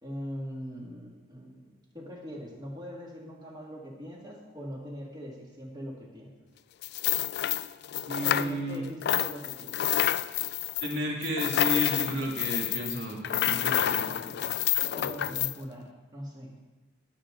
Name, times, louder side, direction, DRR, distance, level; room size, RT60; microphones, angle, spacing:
voice 1, 0.0-6.3 8.2-9.8 13.8-14.5 14.9-16.6, equal, 20° right, -2 dB, 2.2 m, -42 dB
sound 1, 6.8-8.8 9.0-15.5, left 12 dB, 55° left, 0.3 m, -29 dB
voice 2, 8.1-8.8 10.8-14.1, equal, 60° right, 0 dB, 2.2 m, -32 dB
18.5 x 7.0 x 3.9 m, 1.2 s
head